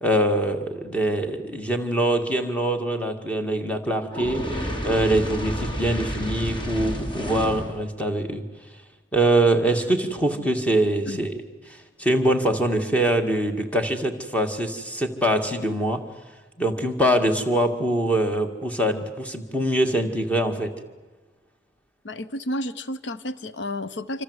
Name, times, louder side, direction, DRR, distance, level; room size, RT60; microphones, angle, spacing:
voice 1, 0.0-8.4 9.1-11.4 11.7-16.1 16.6-20.7, right 1 dB, 10° left, 4 dB, 2.1 m, -23 dB
Fire, 4.1-7.8, equal, 25° left, 3.5 m, -30 dB
voice 2, 22.0-24.2, left 1 dB, 75° left, 13 dB, 0.8 m, -31 dB
26.5 x 25.5 x 8.1 m, 1.3 s
head